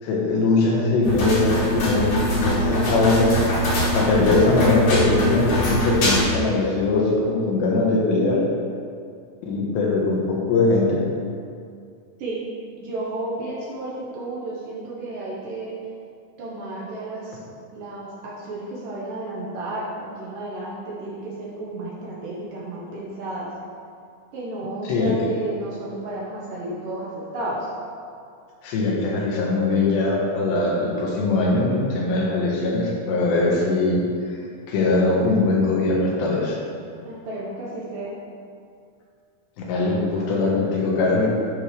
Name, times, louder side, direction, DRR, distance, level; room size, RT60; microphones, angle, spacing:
voice 1, 0.0-3.3 3.9-8.4 9.4-11.0 24.8-25.1 28.6-34.0 34.7-36.6 39.6-41.3, left 3 dB, 85° left, -3 dB, 3.5 m, -21 dB
sound 1, 1.0-6.2, equal, 55° left, 2.7 m, -23 dB
voice 2, 12.8-15.8 16.4-17.4 17.7-23.5 24.3-27.7 37.0-38.1, right 2 dB, 65° right, -5 dB, 2.5 m, -32 dB
11.0 x 6.6 x 3.3 m, 2.4 s
omnidirectional pair, 4.8 m